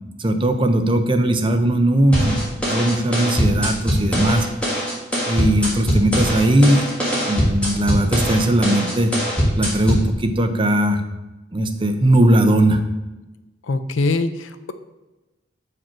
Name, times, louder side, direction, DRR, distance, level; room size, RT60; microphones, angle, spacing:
voice 1, 0.2-4.5 5.3-6.9 7.3-9.1 9.6-11.0 11.5-12.8, right 1 dB, 25° right, 6 dB, 0.5 m, -18 dB
sound 1, 2.1-10.1, equal, 5° left, 1.9 m, -22 dB
voice 2, 13.7-14.7, left 3 dB, 80° left, 11 dB, 0.5 m, -22 dB
7.1 x 5.0 x 4.5 m, 1.1 s
head